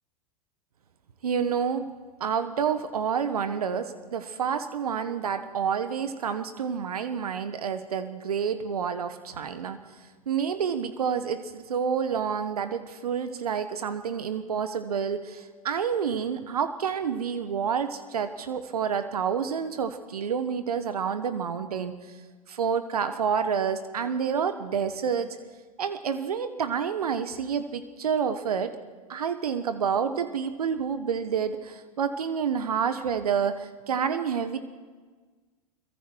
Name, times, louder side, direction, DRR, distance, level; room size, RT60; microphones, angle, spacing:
voice 1, 1.2-1.9 2.2-9.8 10.3-21.9 22.5-25.3 25.8-28.7 29.1-34.6, right 7 dB, 75° right, 10 dB, 1.4 m, -28 dB
25.5 x 23.0 x 4.7 m, 1.4 s
figure-of-eight pair, 95°, 20 cm